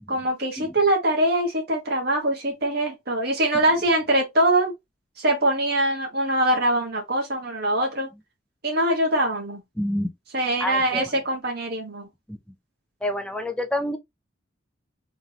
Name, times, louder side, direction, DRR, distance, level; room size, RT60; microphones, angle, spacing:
voice 1, 0.1-4.7 5.2-8.1 8.6-9.6 10.3-12.1, right 1 dB, 50° right, 1.6 m, -23 dB
voice 2, 9.8-10.1 10.6-11.1 12.3-12.4 13.0-14.0, left 1 dB, 5° left, 0.6 m, -27 dB
3.8 x 3.6 x 3.0 m
head